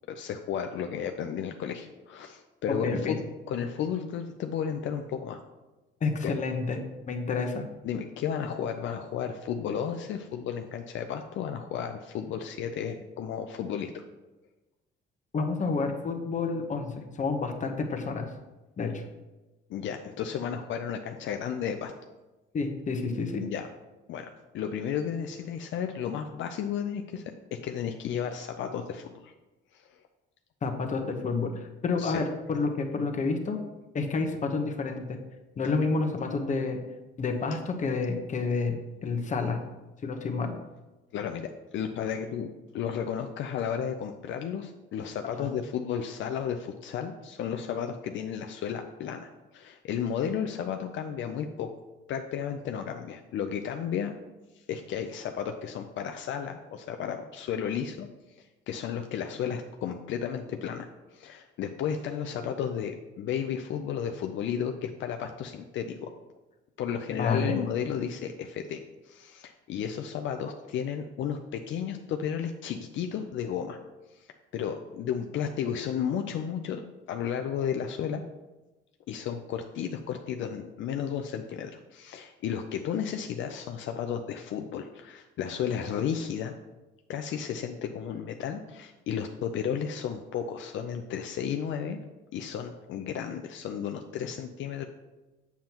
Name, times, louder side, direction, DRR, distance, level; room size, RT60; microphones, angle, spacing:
voice 1, 0.1-3.2 3.5-5.4 6.2-6.3 7.8-14.0 19.7-21.9 23.4-23.7 24.1-24.3 24.5-27.3 27.6-29.3 29.7-29.9 32.0-32.2 41.1-42.5 42.7-51.7 52.1-54.1 54.5-58.1 58.4-66.1 66.8-68.8 69.0-73.8 74.1-74.3 74.5-76.8 77.1-78.2 79.1-86.5 87.1-92.0 92.3-94.9, left 8 dB, 70° left, 5 dB, 0.5 m, -33 dB
voice 2, 2.7-3.2 6.0-6.8 7.1-7.6 15.3-18.3 18.8-19.0 22.5-23.4 30.6-33.6 33.9-35.2 35.6-36.8 37.2-39.6 40.0-40.6 45.4-45.5 67.1-67.6, left 4 dB, 35° left, 4 dB, 1.0 m, -29 dB
7.5 x 7.1 x 2.9 m, 1.1 s
cardioid pair, 110°, 21 cm